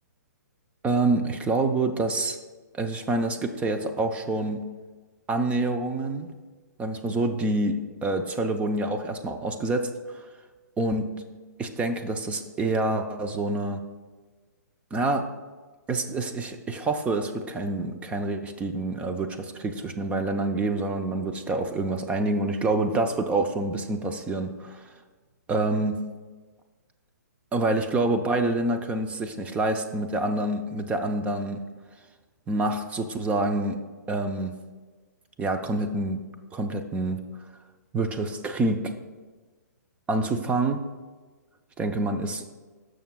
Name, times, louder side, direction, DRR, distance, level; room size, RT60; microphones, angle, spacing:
voice 1, 0.8-2.4 2.7-4.6 5.3-6.3 6.8-7.8 8.0-10.2 10.8-11.1 11.6-13.8 14.9-15.3 15.9-24.9 25.5-26.0 27.5-31.6 32.5-33.8 34.1-34.5 35.4-36.2 36.5-37.2 37.9-38.9 40.1-40.8 41.8-42.4, right 2 dB, 15° right, 6 dB, 0.5 m, -27 dB
15.5 x 6.3 x 2.3 m, 1.3 s
hypercardioid pair, 130°, 10 cm